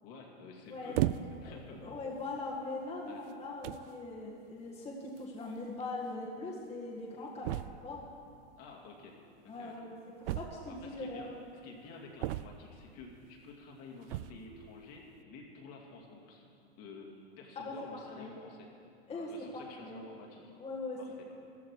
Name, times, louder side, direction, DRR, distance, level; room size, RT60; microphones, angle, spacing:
voice 1, 0.0-1.0 1.4-2.0 3.1-3.2 7.4-7.6 8.6-9.2 9.5-9.9 10.7-11.3 11.6-16.4 16.8-18.7 19.1-20.5 21.0-21.3, left 3 dB, 50° left, -1 dB, 2.5 m, -51 dB
voice 2, 0.7-7.5 7.8-8.0 9.5-9.9 10.2-11.4 17.6-18.3 19.1-20.0 20.6-21.0, left 2 dB, 20° left, -4 dB, 1.9 m, -41 dB
sound 1, 0.9-1.6 2.3-2.5 3.3-3.4 3.6-3.9 5.2-5.3 5.5-5.6 5.8-5.9 7.4-8.0 10.2-10.9 12.2-12.8 14.0-14.5, right 16 dB, 65° right, 0.5 m, -35 dB
14.5 x 12.5 x 4.8 m, 2.5 s
supercardioid pair, 120°, 30 cm